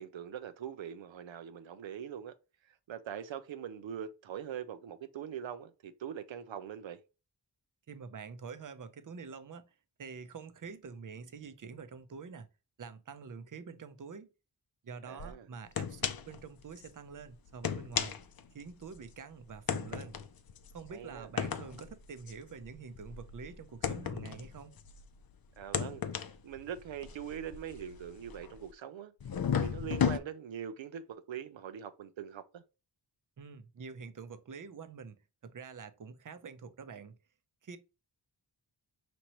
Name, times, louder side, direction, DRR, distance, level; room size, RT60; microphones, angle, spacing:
voice 1, 0.0-2.3 2.7-7.0 15.1-15.5 20.9-21.3 25.6-26.0 26.4-29.1 29.6-32.6, right 9 dB, 85° right, 0.6 m, -42 dB
voice 2, 7.9-9.6 10.0-12.5 12.8-14.3 14.8-18.2 18.5-20.2 20.7-24.7 33.4-35.2 35.4-37.2 37.6-37.8, right 5 dB, 45° right, 0.6 m, -46 dB
sound 1, 15.2-15.3 15.8-16.4 16.8-16.9 17.5-19.1 19.7-25.2 25.6-28.7 29.2-30.2, left 8 dB, 55° left, 0.5 m, -35 dB
5.1 x 3.0 x 2.9 m
wide cardioid pair, 65°, 45 cm